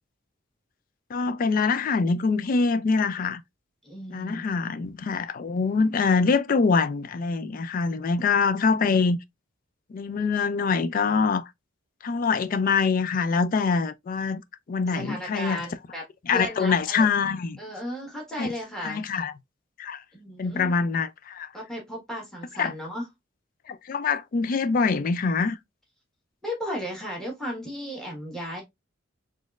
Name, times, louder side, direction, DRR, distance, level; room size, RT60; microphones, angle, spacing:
voice 1, 1.1-3.4 4.1-9.2 9.9-11.5 12.0-14.4 14.7-15.6 16.3-17.6 18.4-18.5 18.8-19.3 19.8-20.0 20.4-21.5 22.6-22.7 23.7-25.6, left 4 dB, 45° left, 0.3 m, -24 dB
voice 2, 3.8-4.4 14.9-17.1 17.6-19.0 20.1-20.7 21.5-23.1 26.4-28.6, equal, 5° left, 1.4 m, -35 dB
4.1 x 3.1 x 2.4 m
head